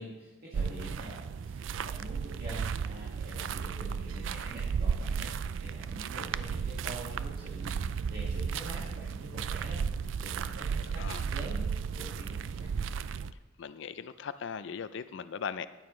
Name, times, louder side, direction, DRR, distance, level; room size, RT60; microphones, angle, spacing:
voice 1, 0.0-5.3 5.6-9.8 10.2-11.7 11.9-12.7, right 1 dB, 50° right, -7 dB, 1.9 m, -45 dB
sound 1, 0.5-13.3, right 6 dB, 70° right, 0.3 m, -34 dB
voice 2, 13.6-15.7, left 6 dB, 65° left, 13 dB, 0.4 m, -38 dB
14.0 x 9.2 x 3.1 m, 1.1 s
head